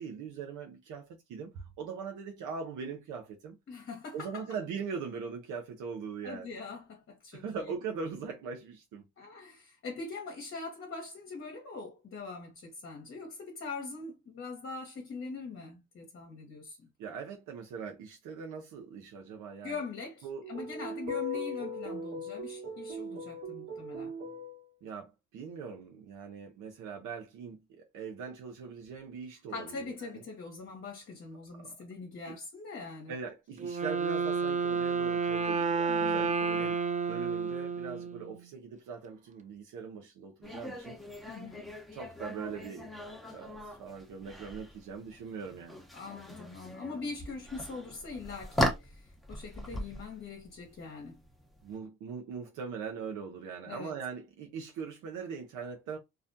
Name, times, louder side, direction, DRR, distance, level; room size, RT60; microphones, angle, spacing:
voice 1, 0.0-3.6 4.1-6.5 7.3-9.0 17.0-19.8 20.2-20.5 24.8-30.2 31.5-31.7 32.3-32.4 33.1-36.8 37.1-41.0 41.9-45.8 51.6-56.0, right 5 dB, 85° right, 0.6 m, -41 dB
voice 2, 3.7-4.5 6.2-7.8 9.2-16.9 19.6-24.1 29.5-33.1 35.9-36.8 41.3-41.7 45.9-51.2 53.7-53.9, left 4 dB, 45° left, 0.8 m, -42 dB
sound 1, 20.4-24.6, left 1 dB, 55° right, 1.3 m, -39 dB
Wind instrument woodwind instrument, 33.6-38.4, right 5 dB, 25° right, 0.4 m, -30 dB
sound 2, 40.4-51.7, equal, ahead, 0.8 m, -39 dB
2.4 x 2.1 x 2.6 m
cardioid pair, 90°, 30 cm